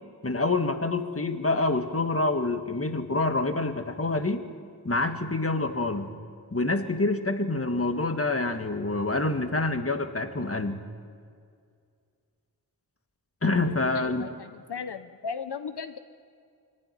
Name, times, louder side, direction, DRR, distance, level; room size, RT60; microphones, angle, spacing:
voice 1, 0.2-4.4 4.8-6.1 6.5-10.8 13.4-14.3, left 2 dB, 35° left, 7 dB, 1.7 m, -27 dB
voice 2, 13.6-16.0, left 6 dB, 75° left, 10 dB, 0.8 m, -37 dB
24.0 x 15.0 x 9.8 m, 2.2 s
wide cardioid pair, 60°, 40 cm